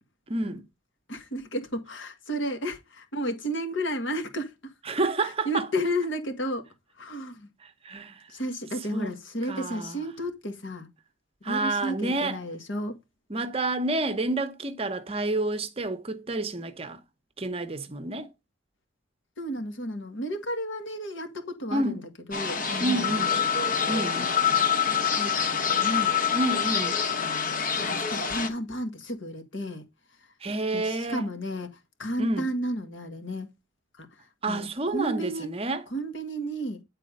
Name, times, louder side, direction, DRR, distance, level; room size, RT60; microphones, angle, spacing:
voice 1, 0.3-0.7 4.9-5.7 7.8-8.3 8.9-9.1 9.5-9.9 11.4-12.4 13.3-17.0 17.4-18.3 21.7-22.0 22.8-23.3 23.9-24.3 26.3-27.0 30.4-31.3 32.2-32.5 34.4-35.8, right 2 dB, 30° right, 0.8 m, -29 dB
voice 2, 1.1-4.7 5.2-6.7 7.0-7.5 8.3-10.9 11.4-13.0 19.4-23.3 23.8-24.3 24.5-24.7 24.9-26.4 27.2-29.9 30.2-30.3 30.7-33.5 33.9-35.5 35.9-36.8, equal, 75° left, 1.9 m, -33 dB
sound 1, 22.3-28.5, left 7 dB, 45° left, 1.3 m, -26 dB
9.8 x 4.1 x 5.3 m
head